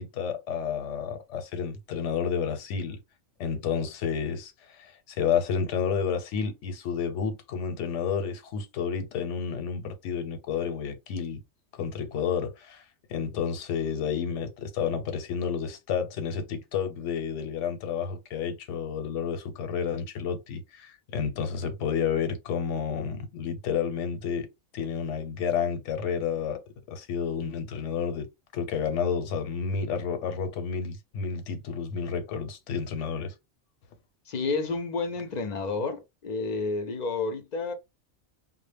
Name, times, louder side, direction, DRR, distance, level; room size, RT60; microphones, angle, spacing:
voice 1, 0.0-3.0 3.4-11.4 11.7-12.8 13.1-24.5 24.7-26.6 26.9-28.3 28.5-33.3, left 6 dB, 90° left, 0.9 m, -30 dB
voice 2, 34.3-37.7, left 3 dB, 55° left, 0.5 m, -30 dB
2.0 x 2.0 x 3.2 m
omnidirectional pair, 1.2 m